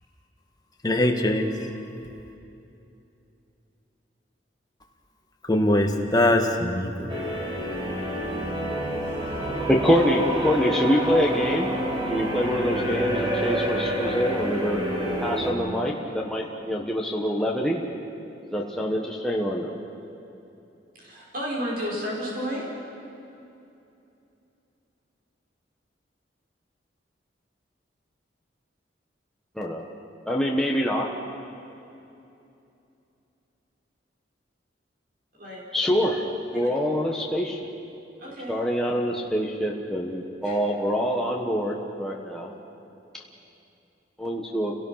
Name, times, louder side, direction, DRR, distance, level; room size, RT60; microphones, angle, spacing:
voice 1, 0.8-1.5 5.5-7.1, left 1 dB, 20° left, 2 dB, 1.8 m, -22 dB
sound 1, 7.1-15.5, right 1 dB, 25° right, 3.2 m, -28 dB
voice 2, 9.7-11.7 12.1-14.8 15.2-17.8 18.5-19.7 29.6-29.8 30.3-31.1 35.7-36.3 36.5-37.6 38.5-42.5 44.2-44.7, equal, 5° left, -2 dB, 1.4 m, -25 dB
voice 3, 20.9-22.7 35.3-35.6 36.5-36.6 38.2-38.6 40.4-40.6, equal, 55° right, -4 dB, 5.3 m, -32 dB
29.5 x 18.0 x 5.8 m, 2.8 s
head